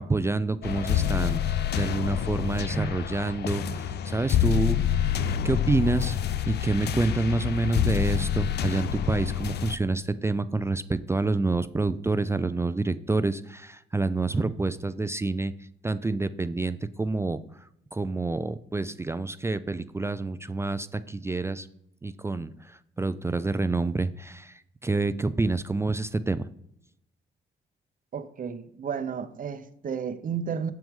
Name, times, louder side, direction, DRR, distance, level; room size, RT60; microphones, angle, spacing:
voice 1, 0.0-4.8 5.4-6.2 6.5-15.5 15.8-17.4 17.9-21.7 22.0-26.5, right 3 dB, 15° right, 0.3 m, -28 dB
sound 1, 0.6-9.7, left 10 dB, 55° left, 0.5 m, -27 dB
voice 2, 28.1-30.7, right 7 dB, 45° right, 0.7 m, -32 dB
6.9 x 5.9 x 3.7 m
cardioid pair, 90°, 20 cm